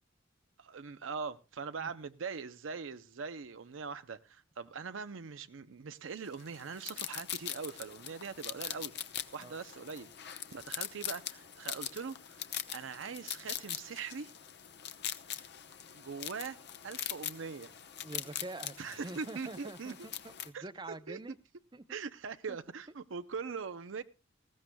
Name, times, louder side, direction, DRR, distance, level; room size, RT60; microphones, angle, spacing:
voice 1, 0.6-8.9 9.3-14.3 15.9-16.6 16.8-17.7 18.8-19.9 20.5-20.6 21.1-21.2 21.9-24.0, right 5 dB, 90° right, 0.6 m, -42 dB
sound 1, 6.3-20.5, left 11 dB, 60° left, 0.8 m, -42 dB
voice 2, 18.0-21.4 21.7-22.0 22.5-22.6, right 2 dB, 25° right, 0.6 m, -46 dB
19.0 x 16.0 x 2.2 m
head